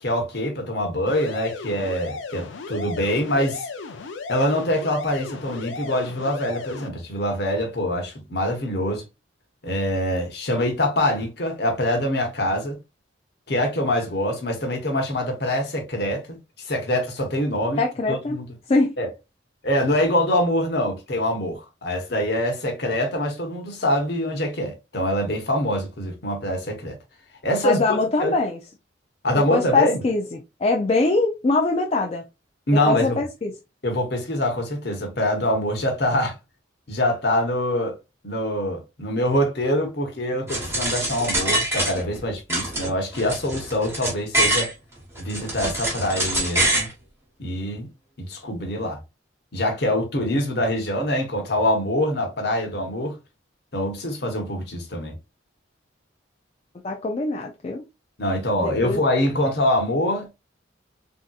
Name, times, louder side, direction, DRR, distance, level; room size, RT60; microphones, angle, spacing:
voice 1, 0.0-3.7 4.3-9.0 9.6-12.8 13.5-17.8 18.1-18.5 19.0-19.1 19.6-26.9 27.4-27.8 28.2-28.3 29.2-30.0 32.7-33.2 33.8-36.3 36.9-37.9 38.2-44.7 45.2-46.9 47.4-47.9 48.2-49.0 49.5-53.2 53.7-55.2 58.2-60.3, left 1 dB, 55° left, 1.0 m, -24 dB
sound 1, 1.1-6.9, left 4 dB, 75° left, 0.6 m, -35 dB
voice 2, 17.8-18.4 18.7-18.9 27.6-28.6 29.5-30.2 30.6-32.2 32.9-33.5 56.8-57.8 58.5-59.0, left 3 dB, 30° left, 0.3 m, -22 dB
sound 2, 40.5-42.2 42.5-44.7 45.2-46.9, right 1 dB, 15° right, 1.1 m, -24 dB
3.5 x 2.8 x 2.3 m
head